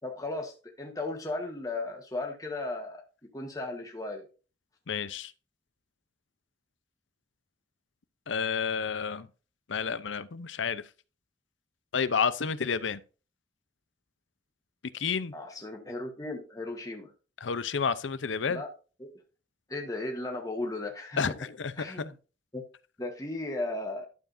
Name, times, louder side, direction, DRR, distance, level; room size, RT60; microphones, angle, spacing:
voice 1, 0.0-3.0 3.3-4.3 15.3-17.1 18.5-18.7 19.0-19.1 19.7-21.2 21.8-22.1 22.5-22.6 23.0-24.0, left 2 dB, 20° left, 1.6 m, -36 dB
voice 2, 4.9-5.3 8.3-9.3 9.7-10.8 11.9-13.0 14.9-15.3 17.4-18.6 21.2-21.7, left 6 dB, 90° left, 0.6 m, -30 dB
12.0 x 7.1 x 2.6 m
head